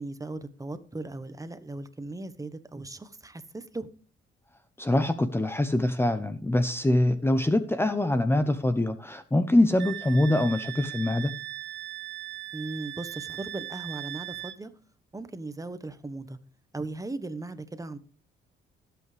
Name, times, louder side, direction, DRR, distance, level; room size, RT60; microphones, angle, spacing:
voice 1, 0.0-3.9 12.5-14.7 15.1-16.4 16.7-18.0, right 2 dB, 15° right, 1.3 m, -37 dB
voice 2, 4.8-11.3, left 1 dB, 10° left, 0.9 m, -24 dB
Wind instrument woodwind instrument, 9.8-14.6, right 14 dB, 65° right, 0.8 m, -39 dB
17.5 x 8.2 x 3.5 m
cardioid pair, 90°, 20 cm